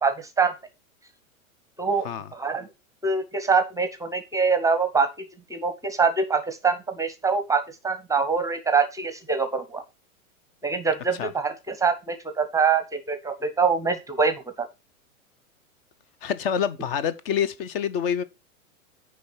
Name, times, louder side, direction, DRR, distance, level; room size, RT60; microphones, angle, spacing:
voice 1, 0.0-0.5 1.8-2.7 3.0-9.8 10.6-14.7, right 5 dB, 10° right, 0.8 m, -24 dB
voice 2, 16.2-18.2, left 8 dB, 40° left, 0.8 m, -26 dB
9.5 x 3.4 x 6.1 m
figure-of-eight pair, 105°, 42 cm